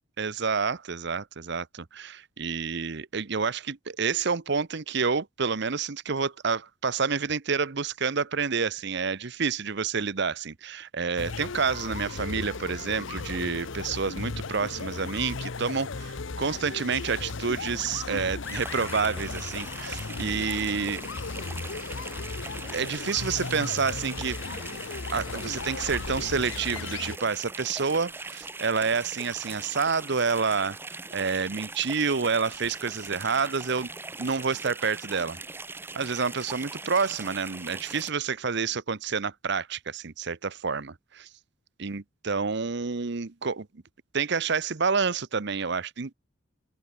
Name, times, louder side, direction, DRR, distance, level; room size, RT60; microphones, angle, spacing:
voice 1, 0.2-21.0 22.7-24.8 25.1-33.9 34.2-35.4 35.9-41.3 41.8-43.7 44.1-46.1, right 5 dB, 60° right, 0.9 m, -29 dB
sound 1, 11.2-27.2, left 4 dB, 70° left, 0.9 m, -36 dB
sound 2, 12.6-14.0 14.5-17.9, left 2 dB, 45° left, 7.1 m, -59 dB
sound 3, 18.4-38.1, right 3 dB, 10° right, 0.6 m, -41 dB
open air
head